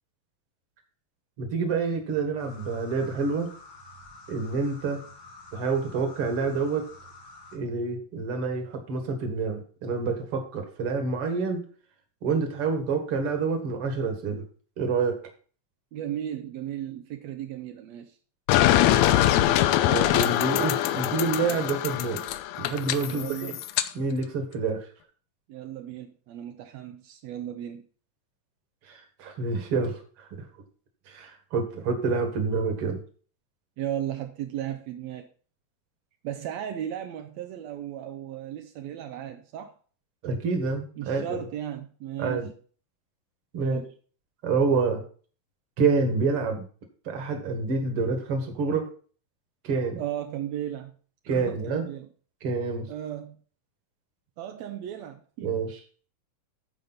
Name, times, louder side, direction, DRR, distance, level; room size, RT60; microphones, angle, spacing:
voice 1, 1.4-3.5 4.3-5.0 5.5-6.9 7.5-11.6 12.2-14.4 14.8-15.2 19.8-23.6 23.9-24.9 28.8-30.5 31.1-33.0 40.2-41.4 42.2-42.5 43.5-43.8 44.4-45.0 45.8-46.6 47.1-48.9 49.6-50.0 51.3-51.9 52.4-52.9 55.4-55.8, right 4 dB, 50° right, 5 dB, 2.1 m, -28 dB
sound 1, 2.4-7.6, left 2 dB, 70° left, 4.4 m, -48 dB
voice 2, 15.9-18.2 23.1-23.6 25.5-27.8 33.8-35.3 36.2-39.7 41.0-42.5 43.6-43.9 50.0-50.9 51.3-52.1 52.9-53.4 54.4-55.6, right 11 dB, 80° right, 6 dB, 1.6 m, -35 dB
sound 2, 18.5-23.9, left 13 dB, 90° left, 1.6 m, -23 dB
14.0 x 5.1 x 4.0 m, 0.41 s
omnidirectional pair, 3.9 m